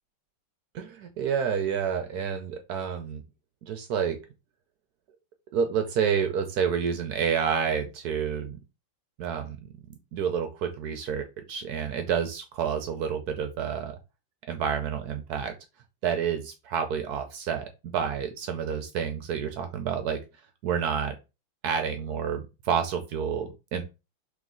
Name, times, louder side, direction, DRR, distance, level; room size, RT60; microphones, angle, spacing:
voice 1, 0.7-3.2 3.6-4.2 5.5-8.6 9.2-9.6 10.1-14.0 14.5-15.5 16.0-20.2 20.6-21.1 21.6-23.8, right 7 dB, 70° right, 7 dB, 0.9 m, -29 dB
3.2 x 3.1 x 3.7 m, 0.27 s
omnidirectional pair, 2.1 m